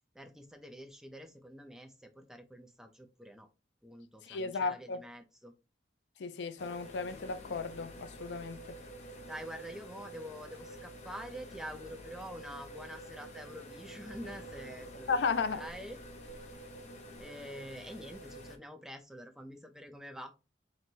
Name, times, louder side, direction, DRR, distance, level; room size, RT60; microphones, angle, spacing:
voice 1, 0.1-3.5 3.8-5.5 9.3-15.2 15.4-16.0 17.2-20.3, equal, 5° right, 0.5 m, -46 dB
voice 2, 4.2-5.0 6.2-8.8 15.1-15.6, left 4 dB, 85° left, 0.4 m, -34 dB
sound 1, 6.6-18.6, right 1 dB, 40° left, 0.7 m, -48 dB
4.0 x 2.1 x 4.5 m
head